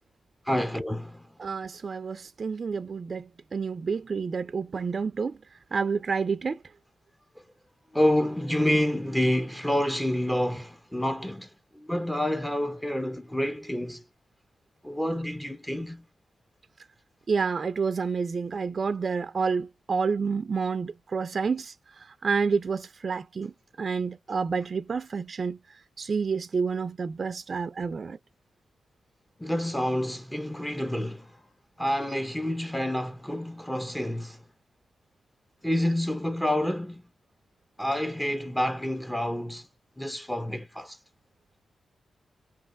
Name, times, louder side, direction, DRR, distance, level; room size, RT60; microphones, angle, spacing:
voice 1, 0.5-1.2 7.9-14.0 14.8-16.0 29.4-31.3 31.8-34.4 35.6-37.0 37.8-39.7 40.0-41.0, left 1 dB, 10° left, 0.6 m, -28 dB
voice 2, 1.4-5.4 5.7-6.6 17.3-23.5 23.8-25.6 26.0-28.2, right 5 dB, 55° right, 0.4 m, -29 dB
3.2 x 2.4 x 2.5 m
supercardioid pair, 50°, 0 cm